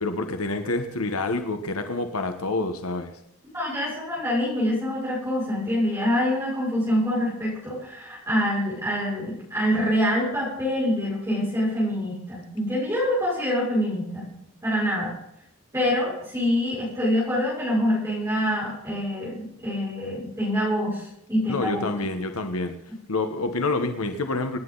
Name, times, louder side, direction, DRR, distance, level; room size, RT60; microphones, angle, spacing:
voice 1, 0.0-3.1 21.5-22.8 23.1-24.6, left 2 dB, 90° left, 7 dB, 1.4 m, -27 dB
voice 2, 3.5-14.3 14.6-15.1 15.7-21.9, equal, 15° right, -8 dB, 6.3 m, -25 dB
26.5 x 10.0 x 4.1 m, 0.75 s
head